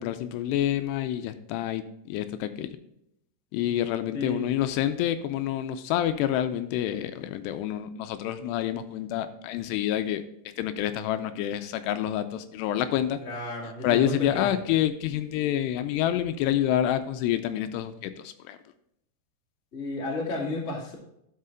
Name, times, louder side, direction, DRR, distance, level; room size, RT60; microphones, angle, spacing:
voice 1, 0.0-2.7 3.5-10.2 10.6-13.2 13.8-18.6, left 11 dB, 85° left, 10 dB, 2.6 m, -28 dB
voice 2, 4.1-4.5 13.2-14.6 19.7-20.9, left 2 dB, 40° left, -3 dB, 1.0 m, -33 dB
11.0 x 5.7 x 3.8 m, 0.77 s
omnidirectional pair, 5.0 m